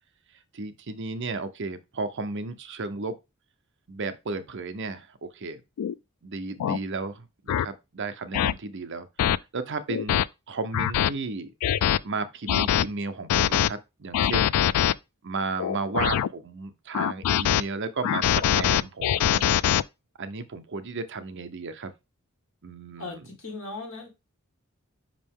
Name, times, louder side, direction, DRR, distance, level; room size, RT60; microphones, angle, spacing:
voice 1, 0.5-3.2 3.9-5.6 6.2-9.1 9.5-11.5 12.0-14.6 15.2-19.4 20.2-21.9 22.6-23.2, right 3 dB, 55° right, 0.7 m, -34 dB
sound 1, 5.8-5.9 6.6-6.8 7.5-7.6 8.3-8.5 9.2-9.4 9.9-10.2 10.7-11.1 11.6-12.0 12.5-12.8 13.3-13.7 14.1-14.9 15.6-16.3 16.9-17.6 18.0-19.8, left 10 dB, 80° left, 0.3 m, -23 dB
voice 2, 23.0-24.1, left 3 dB, 60° left, 2.1 m, -38 dB
5.4 x 5.0 x 3.6 m
head